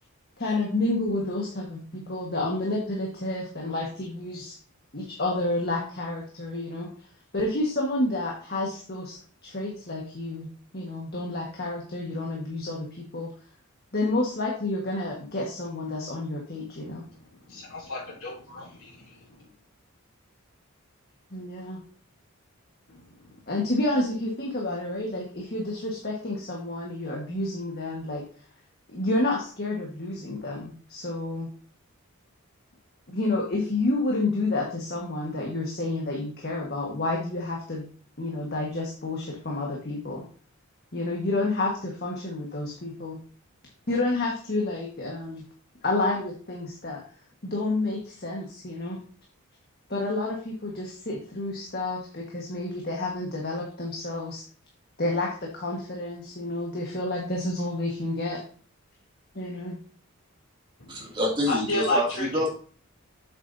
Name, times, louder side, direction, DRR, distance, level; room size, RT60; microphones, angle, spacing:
voice 1, 0.4-4.6 4.9-6.9 7.3-9.2 9.4-10.5 10.7-13.3 13.9-17.0 21.3-21.8 23.5-28.2 28.9-31.5 33.1-37.8 38.2-40.2 40.9-43.2 43.9-45.4 45.8-47.0 47.4-49.0 49.9-54.4 55.0-58.4 59.3-59.8, left 2 dB, 45° left, -1 dB, 1.5 m, -29 dB
voice 2, 17.5-19.0 61.5-62.3, left 2 dB, 70° left, -10 dB, 3.4 m, -30 dB
voice 3, 60.9-62.5, left 1 dB, 20° right, -2 dB, 2.4 m, -27 dB
8.4 x 7.6 x 2.7 m, 0.43 s
head